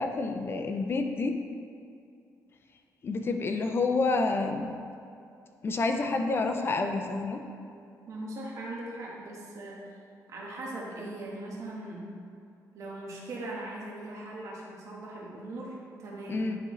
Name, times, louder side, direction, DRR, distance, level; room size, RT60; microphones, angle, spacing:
voice 1, 0.0-1.3 3.0-4.8 5.6-7.4 16.3-16.6, left 3 dB, 35° left, 4 dB, 0.5 m, -28 dB
voice 2, 8.1-9.9 10.3-12.1 12.7-16.5, right 1 dB, 55° right, -4 dB, 1.4 m, -40 dB
10.0 x 3.8 x 3.1 m, 2.5 s
cardioid pair, 130°, 6 cm